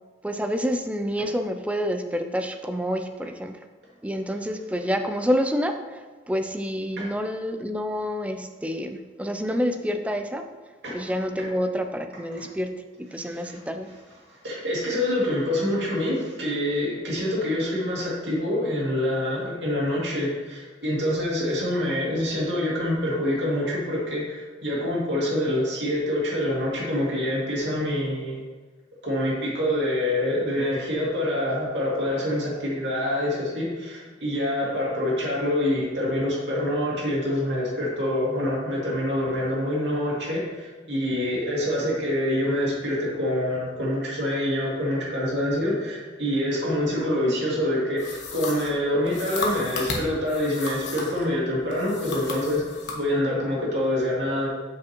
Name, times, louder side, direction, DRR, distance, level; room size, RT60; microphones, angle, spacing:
voice 1, 0.2-3.6 4.0-10.4 10.9-13.9, equal, 5° right, 6 dB, 0.4 m, -28 dB
voice 2, 13.1-13.6 13.8-13.9 14.3-28.4 29.0-52.6 52.9-54.5, left 1 dB, 75° right, -5 dB, 2.2 m, -26 dB
sound 1, 48.0-51.3 51.7-53.0, left 3 dB, 70° left, 1.1 m, -34 dB
7.5 x 6.0 x 2.9 m, 1.3 s
head